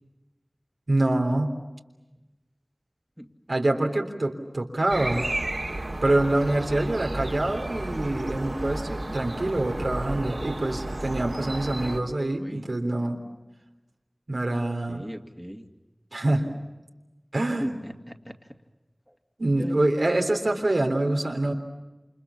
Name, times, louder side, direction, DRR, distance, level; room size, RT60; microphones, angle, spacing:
voice 1, 0.9-1.5 3.5-5.2 6.0-13.2 14.3-15.0 16.1-16.6 17.3-17.7 19.4-21.5, right 2 dB, 85° right, 3 dB, 3.4 m, -25 dB
sound 1, 4.9-12.0, right 1 dB, 65° right, 3.3 m, -33 dB
voice 2, 14.9-15.7 17.6-18.5 19.1-19.2 19.6-19.8, equal, 5° right, 3 dB, 2.6 m, -38 dB
29.0 x 28.0 x 7.2 m, 1.1 s
wide cardioid pair, 40°, 0 cm